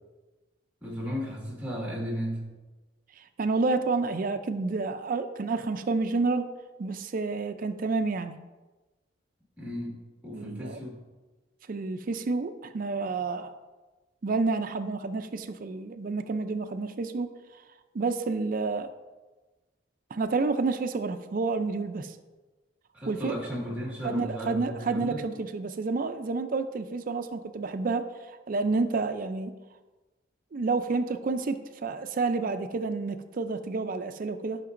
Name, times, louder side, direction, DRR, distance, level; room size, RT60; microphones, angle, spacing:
voice 1, 0.8-2.6 9.6-11.0 22.9-25.3, equal, 10° right, -3 dB, 1.8 m, -35 dB
voice 2, 3.4-6.4 6.8-8.4 10.3-10.8 11.7-13.5 14.2-17.3 17.9-18.9 20.1-22.1 23.1-23.4 24.0-28.1 28.5-29.5 30.5-34.6, right 3 dB, 50° right, 9 dB, 0.4 m, -29 dB
11.5 x 5.8 x 2.6 m, 1.2 s
head